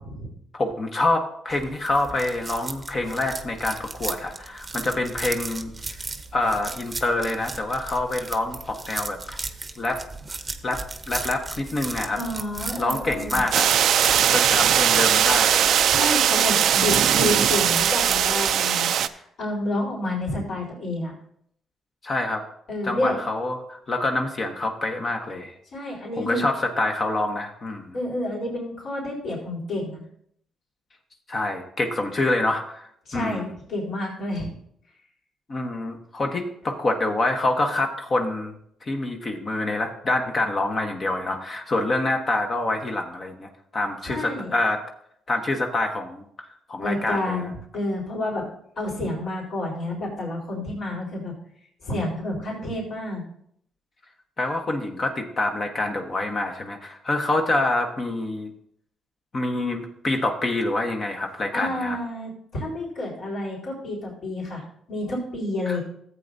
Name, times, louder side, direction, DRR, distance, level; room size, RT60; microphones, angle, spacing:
voice 1, 0.5-5.7 6.3-9.4 9.8-10.0 10.6-12.2 12.8-13.7 14.3-15.8 22.0-22.4 22.8-25.5 26.2-27.9 31.3-33.4 35.5-44.8 45.3-47.4 54.4-58.5 59.3-62.0 65.7-65.8, left 2 dB, 40° left, 3 dB, 1.1 m, -26 dB
sound 1, 1.5-18.5, right 3 dB, 25° right, 0.8 m, -35 dB
voice 2, 12.1-13.4 15.8-21.1 22.7-23.2 25.7-26.4 27.9-30.0 33.1-34.5 44.0-44.5 46.8-48.4 48.8-51.3 51.8-53.2 61.5-65.8, left 1 dB, 65° left, -4 dB, 4.1 m, -29 dB
sound 2, 13.5-19.1, right 9 dB, 75° right, 0.4 m, -20 dB
14.0 x 8.1 x 2.7 m, 0.69 s
cardioid pair, 90°, 0 cm